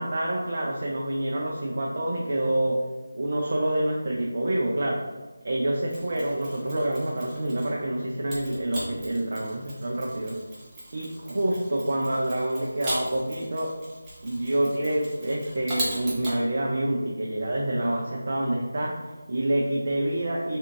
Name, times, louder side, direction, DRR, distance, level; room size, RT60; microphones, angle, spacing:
voice 1, 0.0-2.8 3.1-5.0 5.4-10.4 10.9-13.7 14.2-20.6, right 1 dB, 50° right, -2 dB, 0.5 m, -27 dB
Mechanisms, 5.9-7.8 8.3-16.4, right 1 dB, 15° right, 1.0 m, -38 dB
3.6 x 3.3 x 3.0 m, 1.2 s
figure-of-eight pair, 160°, 0 cm